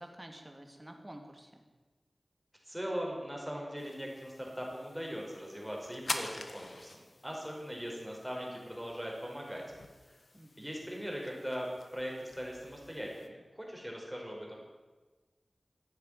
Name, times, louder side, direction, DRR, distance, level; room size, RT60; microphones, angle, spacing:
voice 1, 0.0-1.6 10.3-10.7, right 1 dB, 20° right, 3 dB, 2.7 m, -50 dB
voice 2, 2.6-9.6 10.6-14.6, equal, 5° right, -1 dB, 5.3 m, -40 dB
sound 1, 3.8-13.3, left 2 dB, 60° left, 1.5 m, -46 dB
14.5 x 9.9 x 9.3 m, 1.3 s
wide cardioid pair, 65°, 0 cm